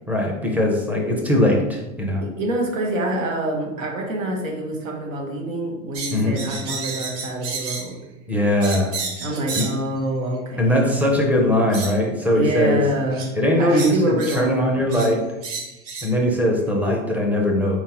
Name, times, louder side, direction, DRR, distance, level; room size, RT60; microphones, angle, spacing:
voice 1, 0.1-2.2 6.1-6.4 8.3-8.9 9.5-9.7 10.6-12.8 13.3-15.2 16.0-17.8, left 1 dB, 5° right, 0 dB, 0.5 m, -20 dB
voice 2, 2.2-8.0 9.2-10.8 12.3-13.3 13.5-14.6, right 1 dB, 90° right, 0 dB, 1.4 m, -26 dB
sound 1, 5.9-7.9 8.6-9.8 10.9-11.0 11.7-11.9 13.1-13.3 13.7-14.4 14.9-15.1 15.4-16.1, right 4 dB, 35° right, 0.9 m, -31 dB
4.4 x 3.6 x 2.9 m, 1.0 s
supercardioid pair, 130°, 38 cm